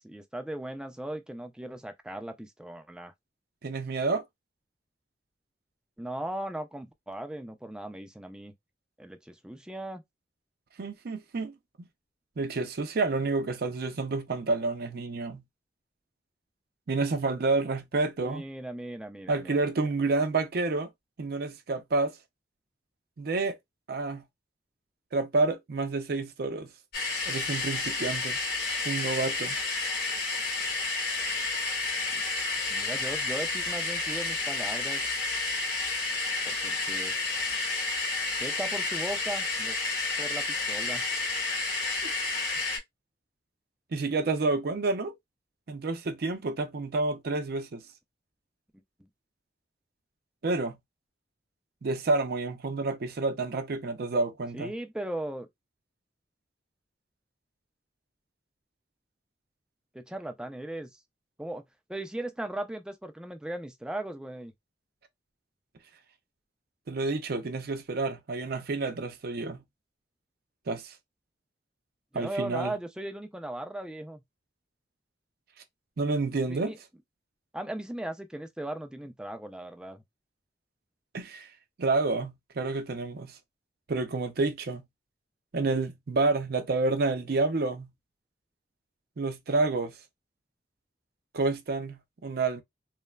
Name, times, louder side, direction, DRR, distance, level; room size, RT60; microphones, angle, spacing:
voice 1, 0.0-3.1 6.0-8.5 9.0-10.0 18.2-19.6 32.7-35.1 36.4-37.1 38.4-39.8 40.2-41.1 49.0-49.1 54.5-55.5 59.9-61.0 61.4-61.6 61.9-64.5 72.1-74.2 76.5-76.8 77.5-80.0, right 1 dB, 5° right, 0.3 m, -38 dB
voice 2, 3.6-4.2 10.8-11.9 12.4-15.4 16.9-18.4 19.3-20.9 21.2-22.1 23.2-23.6 23.9-24.2 25.1-26.7 27.3-28.4 28.8-29.6 42.0-42.1 43.9-45.1 45.7-47.8 50.4-50.8 51.8-54.7 66.9-69.6 70.7-70.9 72.1-72.7 76.0-76.7 81.1-81.5 81.8-83.3 83.9-84.8 85.5-87.9 89.2-89.9 91.3-92.6, right 3 dB, 60° right, 0.5 m, -29 dB
sound 1, 26.9-42.8, left 3 dB, 60° left, 1.5 m, -30 dB
3.1 x 2.0 x 2.2 m
head